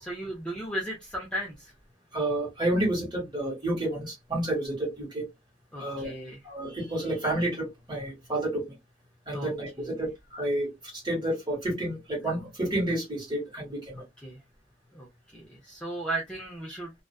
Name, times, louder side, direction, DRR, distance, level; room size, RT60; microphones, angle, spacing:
voice 1, 0.0-1.7 5.7-6.4 9.3-9.5 9.8-9.9 14.0-14.4 14.9-15.1 15.3-16.9, right 1 dB, 5° left, 0.5 m, -35 dB
voice 2, 2.1-5.2 5.7-6.1 6.4-8.7 9.3-14.0, right 1 dB, 20° right, 1.3 m, -30 dB
2.4 x 2.3 x 2.3 m
head